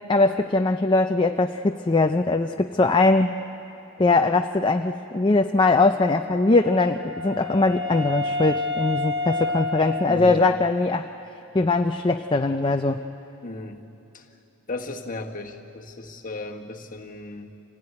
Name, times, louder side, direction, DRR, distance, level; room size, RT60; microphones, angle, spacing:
voice 1, 0.1-3.3 4.0-11.1 11.5-13.0, left 3 dB, 20° left, 5 dB, 0.5 m, -21 dB
Wind instrument woodwind instrument, 6.1-10.8, left 2 dB, 40° right, 2.0 m, -30 dB
voice 2, 10.1-10.5 13.4-13.8 14.1-14.2 14.7-17.5, left 2 dB, 40° left, 2 dB, 1.5 m, -35 dB
26.0 x 17.0 x 9.7 m, 2.9 s
head